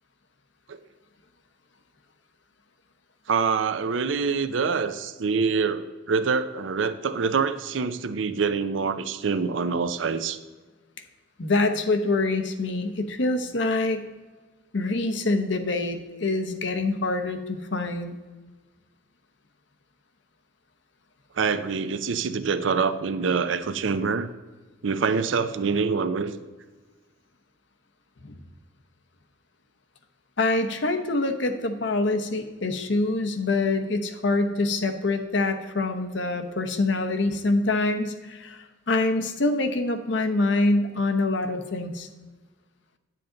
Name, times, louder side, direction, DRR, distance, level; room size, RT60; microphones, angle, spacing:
voice 1, 3.3-10.4 21.4-24.3 24.8-26.3, right 5 dB, 80° right, 12 dB, 0.5 m, -25 dB
voice 2, 11.4-14.1 14.7-18.2 28.2-28.4 30.4-42.1, left 2 dB, 70° left, 6 dB, 0.9 m, -25 dB
10.5 x 7.6 x 3.8 m, 1.3 s
head